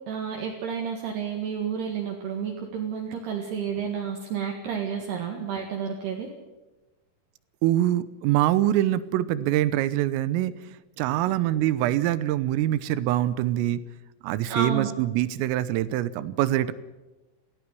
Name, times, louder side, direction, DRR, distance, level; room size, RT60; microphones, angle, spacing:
voice 1, 0.1-6.3 14.5-14.9, right 7 dB, 60° right, 1 dB, 3.6 m, -31 dB
voice 2, 7.6-13.8 14.2-16.7, right 13 dB, 90° right, 15 dB, 3.5 m, -24 dB
18.5 x 16.0 x 9.8 m, 1.1 s
omnidirectional pair, 5.8 m